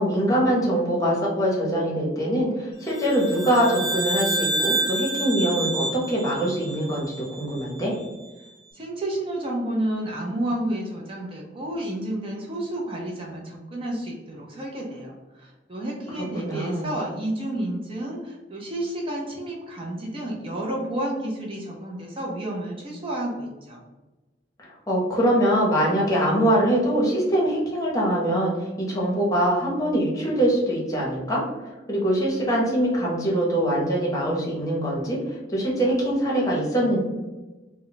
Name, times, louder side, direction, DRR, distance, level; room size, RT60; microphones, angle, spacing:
voice 1, 0.0-7.0 7.4-7.9 16.4-16.9 24.9-31.4 31.9-37.0, right 1 dB, 20° left, -4 dB, 0.8 m, -23 dB
sound 1, 2.9-7.4, right 2 dB, 60° right, 0.8 m, -28 dB
voice 2, 8.7-23.8, right 1 dB, 30° right, -2 dB, 0.5 m, -30 dB
2.3 x 2.1 x 3.8 m, 1.1 s
head